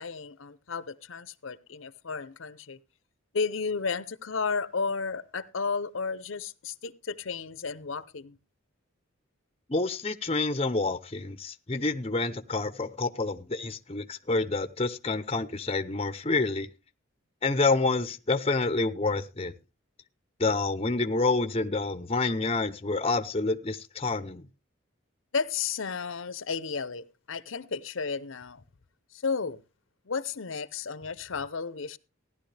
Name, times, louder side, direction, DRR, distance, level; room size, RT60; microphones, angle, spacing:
voice 1, 0.0-2.8 3.3-8.4 25.3-28.6 29.1-29.6 30.1-32.0, left 5 dB, 75° left, 0.8 m, -33 dB
voice 2, 9.7-16.7 17.4-19.5 20.4-24.4, left 3 dB, 30° left, 0.7 m, -28 dB
16.0 x 11.0 x 3.3 m
head